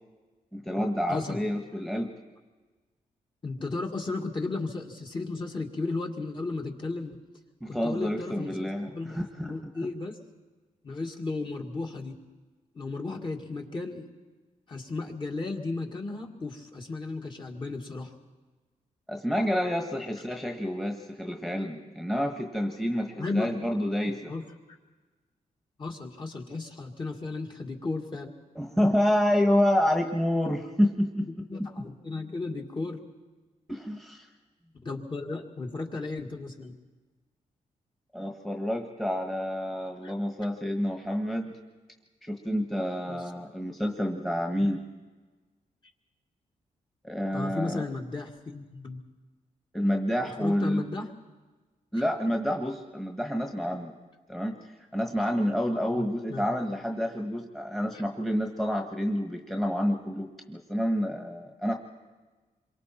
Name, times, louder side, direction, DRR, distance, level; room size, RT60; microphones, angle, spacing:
voice 1, 0.5-2.1 7.6-9.7 19.1-24.3 28.5-31.3 33.7-34.3 38.1-41.5 42.2-44.8 47.0-47.8 49.7-50.8 51.9-53.9 54.3-54.5 54.9-61.7, equal, ahead, 3 dB, 1.5 m, -28 dB
voice 2, 3.4-7.2 7.6-10.2 10.8-12.2 12.7-14.1 14.7-18.1 23.2-23.5 24.3-24.4 25.8-28.3 31.5-33.0 34.8-36.7 40.0-40.1 43.1-43.2 47.3-49.0 50.4-51.1 51.9-52.0 55.9-56.5 57.9-58.0, left 3 dB, 35° left, 1 dB, 2.3 m, -34 dB
27.0 x 23.5 x 4.4 m, 1.3 s
wide cardioid pair, 130°, 14 cm